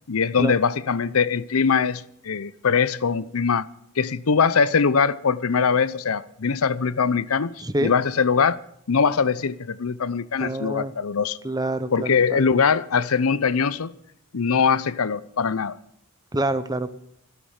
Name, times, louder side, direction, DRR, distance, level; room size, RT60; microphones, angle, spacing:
voice 1, 0.1-3.7 4.0-7.5 7.8-8.6 8.9-11.4 11.9-13.9 14.3-15.8, left 5 dB, 85° left, 0.7 m, -22 dB
voice 2, 7.6-7.9 10.3-10.9 11.4-12.5 16.3-16.9, right 1 dB, 20° right, 0.9 m, -27 dB
14.0 x 13.0 x 6.5 m
head